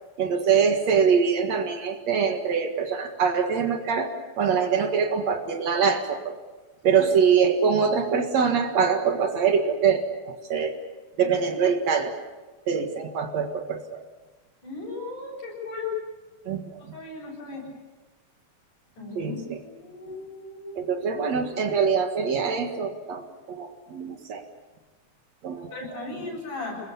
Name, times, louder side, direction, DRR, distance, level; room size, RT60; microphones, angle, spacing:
voice 1, 0.2-6.3 6.8-10.8 11.2-12.1 12.7-14.0 16.5-16.9 19.1-19.6 20.8-24.4 25.4-26.3, right 6 dB, 60° right, 5 dB, 2.9 m, -24 dB
voice 2, 14.6-16.0 16.9-17.7 19.0-20.9 25.7-26.8, left 4 dB, 75° left, -1 dB, 9.6 m, -36 dB
26.5 x 21.0 x 7.1 m, 1.2 s
omnidirectional pair, 3.6 m